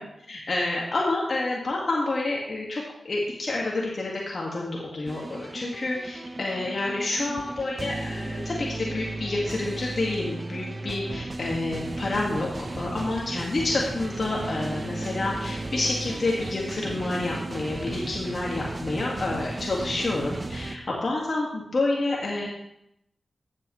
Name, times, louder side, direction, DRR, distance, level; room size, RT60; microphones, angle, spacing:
voice 1, 0.3-12.5 12.8-22.5, left 2 dB, 60° left, -3 dB, 1.8 m, -29 dB
sound 1, 5.1-20.8, right 2 dB, 40° right, 0.8 m, -35 dB
14.0 x 7.6 x 3.1 m, 0.81 s
cardioid pair, 45°, 0 cm